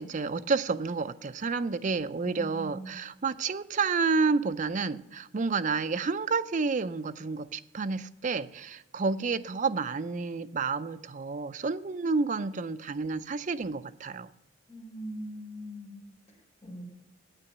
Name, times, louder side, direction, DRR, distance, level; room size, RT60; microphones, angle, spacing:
voice 1, 0.0-14.3, right 4 dB, 40° right, 11 dB, 0.4 m, -30 dB
voice 2, 2.3-2.9 14.7-15.9 16.6-16.8, equal, 35° left, -4 dB, 4.6 m, -41 dB
9.1 x 8.8 x 7.8 m, 0.88 s
head